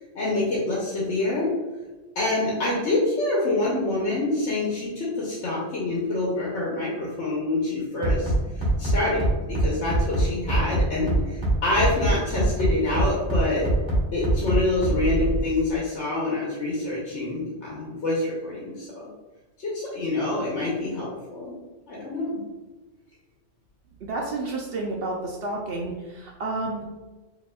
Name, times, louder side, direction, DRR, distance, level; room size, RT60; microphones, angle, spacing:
voice 1, 0.1-1.5 2.1-13.6 14.1-19.1 19.6-21.5 21.9-22.4, left 2 dB, 90° left, -5 dB, 1.2 m, -26 dB
Bass drum, 8.0-15.4, right 2 dB, 20° right, 1.4 m, -22 dB
voice 2, 24.0-26.8, right 2 dB, 65° right, -1 dB, 0.8 m, -30 dB
5.0 x 2.8 x 2.3 m, 1.2 s
omnidirectional pair, 1.1 m